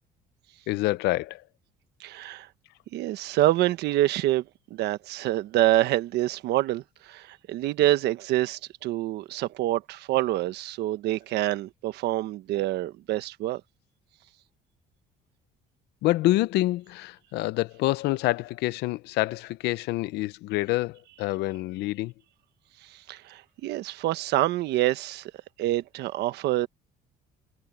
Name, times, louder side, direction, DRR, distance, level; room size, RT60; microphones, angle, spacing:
voice 1, 0.7-1.4 16.0-22.1, left 18 dB, 90° left, 0.8 m, -27 dB
voice 2, 2.0-2.5 2.9-4.4 4.7-13.6 23.1-25.3 25.6-26.7, right 15 dB, 80° right, 1.3 m, -26 dB
cardioid pair, 110°, 17 cm